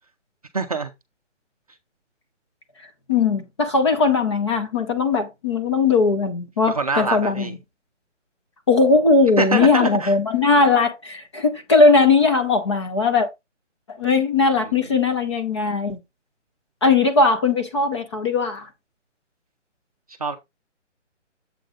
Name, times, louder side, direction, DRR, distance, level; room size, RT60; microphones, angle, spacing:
voice 1, 0.5-0.9 6.7-7.5 9.4-10.1 20.2-20.4, right 3 dB, 30° right, 0.6 m, -24 dB
voice 2, 3.1-7.6 8.7-13.3 13.9-16.0 16.8-18.7, left 4 dB, 25° left, 0.9 m, -19 dB
7.7 x 3.2 x 5.1 m
hypercardioid pair, 165°, 36 cm